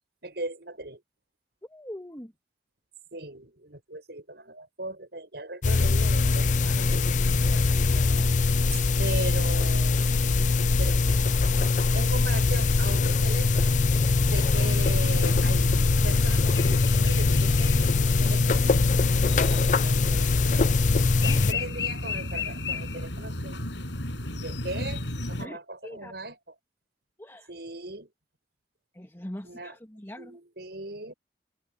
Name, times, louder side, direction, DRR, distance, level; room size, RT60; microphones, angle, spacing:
voice 1, 0.2-1.0 3.1-8.3 8.7-10.4 10.8-11.4 11.9-13.8 14.3-15.8 16.0-20.7 21.2-23.7 24.3-26.5 27.5-28.1 29.4-29.7 30.2-31.1, right 2 dB, 65° right, 7.9 m, -39 dB
voice 2, 1.6-2.3 21.3-21.5 25.4-26.2 27.2-27.5 28.9-30.4, equal, 15° left, 2.2 m, -42 dB
sound 1, 5.6-21.5, left 3 dB, 45° left, 0.5 m, -22 dB
sound 2, 14.5-25.4, left 2 dB, 90° left, 7.5 m, -34 dB
head